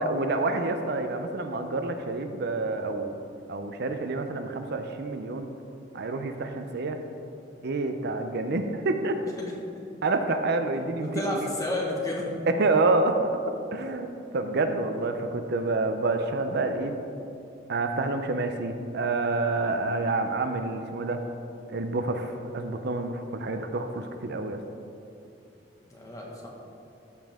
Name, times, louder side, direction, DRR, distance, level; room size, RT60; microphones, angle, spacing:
voice 1, 0.0-3.1 3.5-5.5 5.9-7.0 7.6-9.2 10.0-11.5 12.5-13.2 13.7-14.1 14.3-16.9 17.7-21.2 21.7-24.6, right 3 dB, 60° right, 7 dB, 0.6 m, -28 dB
voice 2, 11.0-12.3 25.9-26.5, left 1 dB, 20° left, -3 dB, 1.5 m, -31 dB
14.0 x 5.5 x 3.6 m, 2.7 s
head